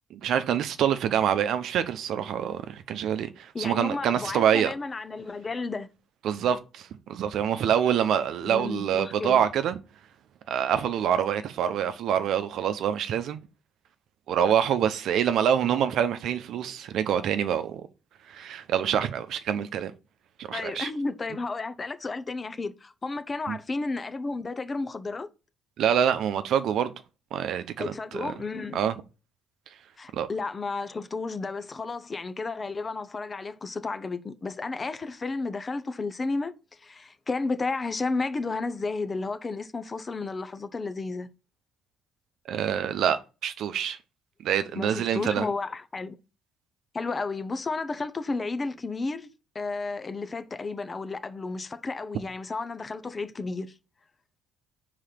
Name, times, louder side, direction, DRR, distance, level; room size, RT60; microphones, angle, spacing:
voice 1, 0.1-4.7 6.2-9.8 10.5-13.4 14.3-17.8 18.3-19.9 20.4-20.9 23.5-23.6 25.8-26.9 27.3-28.3 28.7-28.9 30.1-30.3 42.5-44.0 44.4-45.5, right 9 dB, 65° right, 0.7 m, -26 dB
voice 2, 3.5-5.9 8.4-9.4 20.5-25.3 27.8-28.8 30.0-36.5 36.8-41.3 44.8-46.2 46.9-49.3 49.5-53.7, left 3 dB, 30° left, 0.9 m, -32 dB
4.9 x 4.0 x 5.8 m
supercardioid pair, 65°, 0 cm